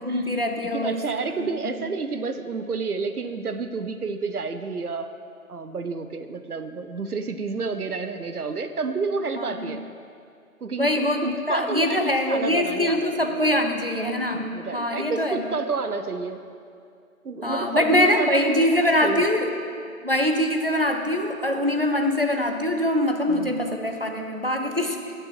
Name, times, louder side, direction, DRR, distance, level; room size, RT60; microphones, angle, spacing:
voice 1, 0.0-1.0 1.4-1.5 9.4-9.7 10.8-15.4 17.4-19.5 20.0-25.1, left 1 dB, 40° right, 4 dB, 0.6 m, -23 dB
voice 2, 0.7-5.1 5.5-9.8 10.6-13.5 14.3-16.4 17.2-19.3 23.3-23.6, right 4 dB, 85° right, 8 dB, 0.8 m, -30 dB
18.5 x 6.9 x 3.1 m, 2.4 s
figure-of-eight pair, 175°, 44 cm